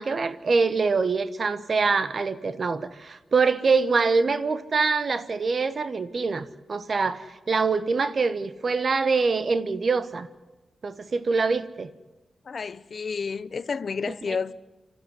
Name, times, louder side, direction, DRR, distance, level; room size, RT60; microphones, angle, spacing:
voice 1, 0.0-10.3 10.8-11.9 14.3-14.4, right 4 dB, 60° right, 1.2 m, -24 dB
voice 2, 12.5-14.5, left 5 dB, 60° left, 0.7 m, -30 dB
28.5 x 12.5 x 9.9 m
supercardioid pair, 45°, 0 cm